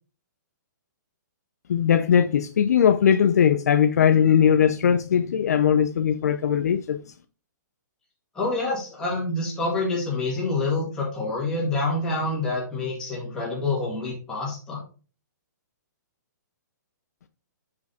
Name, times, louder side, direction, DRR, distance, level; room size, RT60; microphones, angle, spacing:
voice 1, 1.7-7.0, left 8 dB, 55° left, 0.4 m, -19 dB
voice 2, 8.3-14.8, left 2 dB, 5° left, 2.0 m, -27 dB
6.4 x 4.8 x 4.0 m
hypercardioid pair, 175°, 10 cm